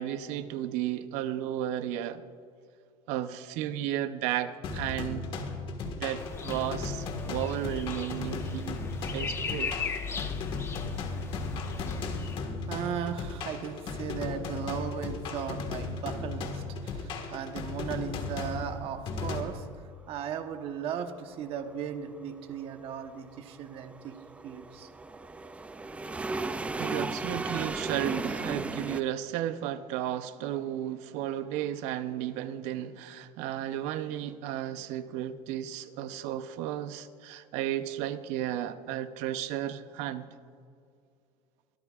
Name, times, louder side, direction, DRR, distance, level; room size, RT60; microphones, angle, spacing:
voice 1, 0.0-2.2 3.1-5.3 5.8-8.8 9.1-9.7 26.8-40.3, right 11 dB, 70° right, 0.7 m, -33 dB
sound 1, 4.6-19.4, left 4 dB, 45° left, 1.6 m, -36 dB
sound 2, 6.2-12.4, left 5 dB, 20° left, 0.9 m, -38 dB
voice 2, 12.1-19.7 20.1-24.2 24.4-24.9, right 8 dB, 50° right, 1.1 m, -37 dB
sound 3, 22.1-29.0, right 3 dB, 10° right, 0.4 m, -36 dB
24.0 x 13.0 x 2.4 m
cardioid pair, 140°, 12 cm